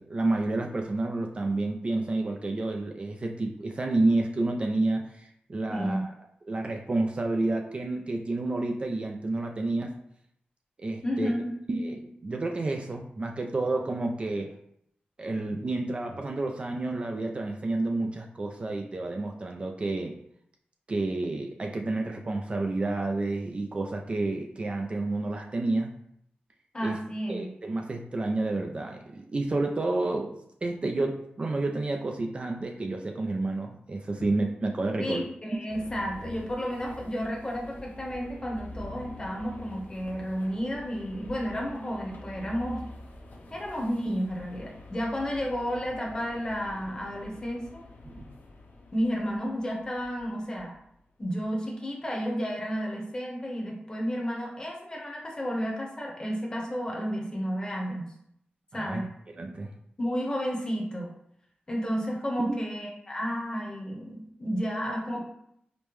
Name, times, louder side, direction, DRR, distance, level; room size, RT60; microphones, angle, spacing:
voice 1, 0.0-6.1 6.5-9.9 10.8-11.3 11.7-14.5 15.2-20.1 20.9-25.9 26.8-27.0 27.3-30.4 30.6-35.3 48.0-48.3 58.7-59.0 59.3-59.7 62.4-62.6, right 2 dB, 35° right, 2 dB, 0.3 m, -30 dB
voice 2, 5.7-6.0 11.0-11.5 26.7-27.5 35.0-42.8 43.5-47.8 48.9-50.7 51.2-58.1 58.7-59.1 60.0-61.1 61.7-65.2, equal, 25° left, -2 dB, 0.8 m, -32 dB
sound 1, 35.7-50.9, left 2 dB, 70° left, 0.6 m, -46 dB
5.0 x 2.1 x 3.0 m, 0.73 s
wide cardioid pair, 145°, 3 cm